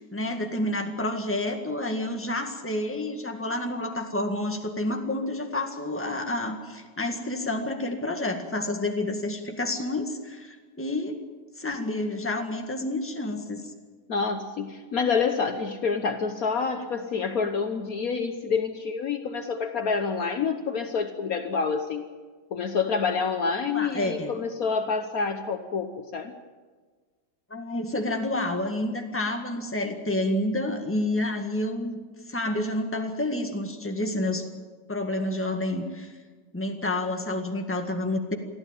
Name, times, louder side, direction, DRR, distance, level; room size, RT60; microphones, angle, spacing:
voice 1, 0.0-11.2 11.6-13.6 23.7-24.3 27.5-32.0 32.3-34.5 34.9-36.1 36.5-38.4, left 1 dB, 5° left, 4 dB, 1.7 m, -29 dB
voice 2, 14.1-22.0 22.5-26.3, left 5 dB, 55° left, 7 dB, 1.4 m, -27 dB
24.0 x 14.0 x 9.0 m, 1.5 s
omnidirectional pair, 1.9 m